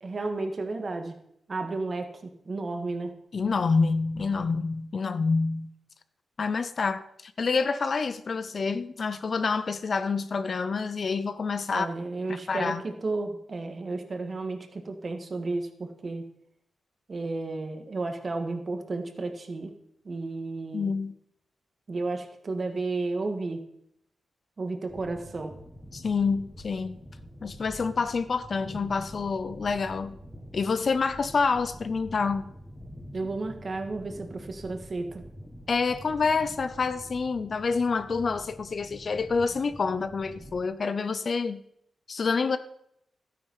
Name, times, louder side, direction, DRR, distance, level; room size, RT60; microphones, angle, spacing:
voice 1, 0.0-1.2 1.5-3.1 11.7-16.2 17.1-19.7 20.1-20.9 21.9-23.6 24.6-25.5 33.1-35.2, right 3 dB, 45° right, 5 dB, 1.9 m, -32 dB
voice 2, 3.3-5.7 6.4-11.9 12.5-12.8 20.7-21.1 25.9-27.0 27.4-30.1 30.5-32.4 35.7-41.6 42.1-42.6, left 4 dB, 50° left, 12 dB, 0.7 m, -27 dB
sound 1, 24.9-40.6, equal, 5° left, 2.0 m, -46 dB
12.5 x 9.4 x 5.7 m, 0.74 s
cardioid pair, 80°, 0 cm